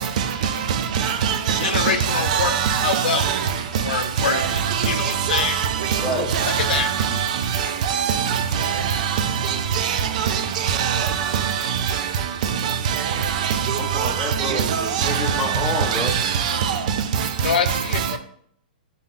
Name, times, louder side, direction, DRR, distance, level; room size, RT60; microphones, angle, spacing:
voice 1, 1.0-3.4 4.2-4.9 5.3-5.5 5.9-6.0 6.3-7.1 7.9-8.7 9.8-10.0 10.2-10.3 10.7-11.5 12.9-13.0 13.4-13.6 14.0-14.1 14.5-14.6 14.9-15.4 15.9-16.8, right 8 dB, 50° right, 0.4 m, -22 dB
voice 2, 1.6-2.5 2.8-3.2 3.8-5.6 6.5-6.9 17.4-18.2, left 7 dB, 70° left, 0.4 m, -25 dB
voice 3, 13.8-16.1, left 1 dB, ahead, 0.7 m, -28 dB
3.9 x 2.2 x 3.8 m
hypercardioid pair, 155°, 5 cm